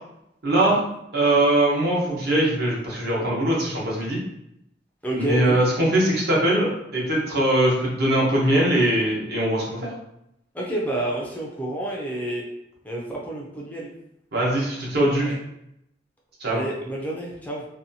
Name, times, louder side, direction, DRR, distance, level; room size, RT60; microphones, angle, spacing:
voice 1, 0.4-0.8 1.1-4.2 5.1-9.9 14.3-15.3 16.4-16.6, right 1 dB, 60° right, -4 dB, 0.9 m, -21 dB
voice 2, 5.0-5.6 10.5-12.4 12.8-13.9 15.2-15.4 16.5-17.7, right 1 dB, 10° left, -3 dB, 0.4 m, -29 dB
2.7 x 2.2 x 2.6 m, 0.80 s
head